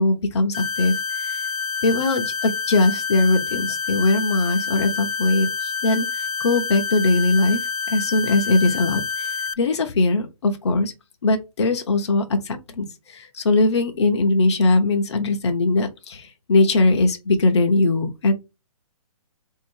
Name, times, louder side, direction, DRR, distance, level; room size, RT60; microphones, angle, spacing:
voice 1, 0.0-1.4 1.8-7.6 7.9-9.3 9.6-10.9 11.2-18.3, left 2 dB, 45° left, 0.8 m, -20 dB
sound 1, 0.5-9.5, left 5 dB, 70° left, 0.4 m, -28 dB
4.1 x 2.7 x 4.5 m
hypercardioid pair, 175°, 19 cm